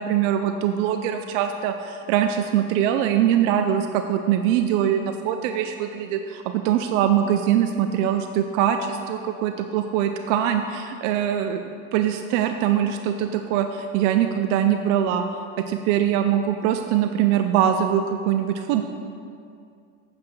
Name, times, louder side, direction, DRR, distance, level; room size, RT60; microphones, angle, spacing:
voice 1, 0.0-11.6 11.9-15.2 15.6-18.8, right 10 dB, 80° right, 7 dB, 0.6 m, -22 dB
8.4 x 7.8 x 4.7 m, 2.4 s
supercardioid pair, 100°, 36 cm